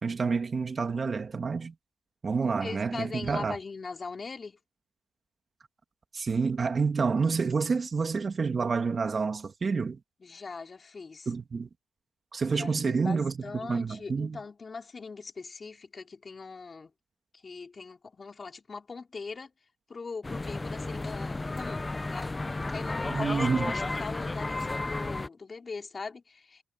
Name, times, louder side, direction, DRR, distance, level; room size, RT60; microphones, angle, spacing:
voice 1, 0.0-1.7 2.2-3.6 6.1-10.0 11.3-11.7 12.3-14.4 23.0-23.7, right 5 dB, 40° right, 2.7 m, -28 dB
voice 2, 2.6-4.6 10.2-11.3 12.5-16.9 17.4-19.5 19.9-21.8 22.1-22.4 22.7-26.6, left 4 dB, 35° left, 4.0 m, -41 dB
sound 1, 20.2-25.3, left 2 dB, 20° left, 0.9 m, -33 dB
cardioid pair, 95°, 0 cm